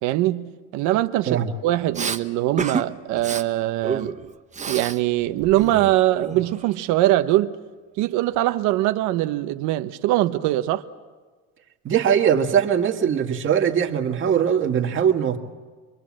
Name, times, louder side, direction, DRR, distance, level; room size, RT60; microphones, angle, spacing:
voice 1, 0.0-4.2 4.7-7.6 8.0-10.8, right 15 dB, 85° right, 1.0 m, -22 dB
Respiratory sounds, 1.9-2.2 2.6-2.9 3.2-3.4 3.8-5.0 5.3-6.7, right 6 dB, 25° right, 1.1 m, -29 dB
voice 2, 11.8-15.4, right 8 dB, 45° right, 2.1 m, -21 dB
25.0 x 22.0 x 7.6 m
cardioid pair, 110°, 29 cm